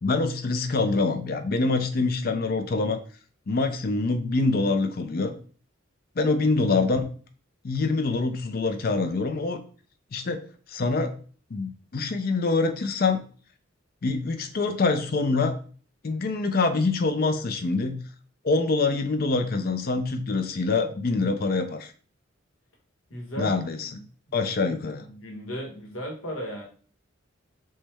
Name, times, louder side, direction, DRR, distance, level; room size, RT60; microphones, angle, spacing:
voice 1, 0.0-3.0 3.5-5.3 6.2-7.1 7.6-9.6 10.1-10.4 10.7-11.1 11.5-13.2 14.0-15.5 16.0-18.0 18.4-21.9 23.4-23.9 24.3-25.1, left 3 dB, 45° left, 7 dB, 0.5 m, -25 dB
voice 2, 23.1-23.6 23.9-24.0 24.3-24.8 25.1-26.6, equal, 75° left, 0 dB, 1.3 m, -36 dB
6.4 x 2.2 x 3.3 m, 0.41 s
head